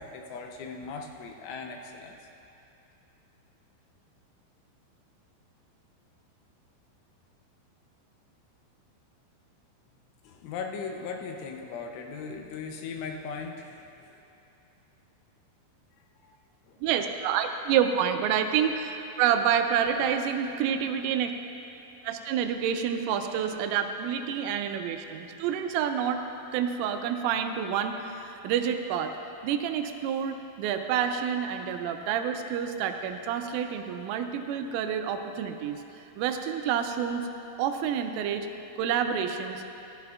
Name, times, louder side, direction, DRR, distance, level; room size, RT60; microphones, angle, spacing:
voice 1, 0.0-2.2 10.2-14.1 16.2-16.3 16.7-16.8, left 5 dB, 80° left, 2 dB, 3.1 m, -38 dB
voice 2, 16.8-21.3 22.0-26.2 26.5-29.2 29.4-37.3 37.6-38.5 38.8-39.6, right 8 dB, 90° right, 6 dB, 3.2 m, -28 dB
15.0 x 14.0 x 2.4 m, 2.7 s
omnidirectional pair, 5.7 m